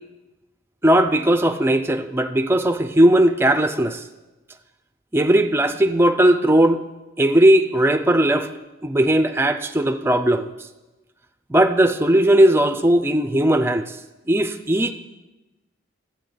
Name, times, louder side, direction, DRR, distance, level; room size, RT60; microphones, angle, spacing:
voice 1, 0.8-4.0 5.1-6.8 7.2-8.5 8.8-10.5 11.5-13.9 14.3-14.9, right 1 dB, 10° right, 7 dB, 0.4 m, -17 dB
12.0 x 8.4 x 3.9 m, 1.1 s
head